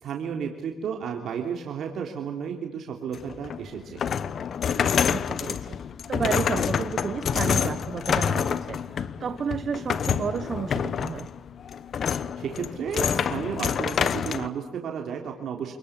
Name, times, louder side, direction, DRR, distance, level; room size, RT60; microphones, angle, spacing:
voice 1, 0.0-4.0 12.4-15.7, right 7 dB, 65° right, 2 dB, 3.4 m, -33 dB
sound 1, 3.1-14.5, left 7 dB, 55° left, 1.1 m, -27 dB
voice 2, 5.1-5.8 6.1-11.3, right 7 dB, 50° right, 12 dB, 1.1 m, -32 dB
27.5 x 20.0 x 8.7 m, 0.91 s
cardioid pair, 90°, 0 cm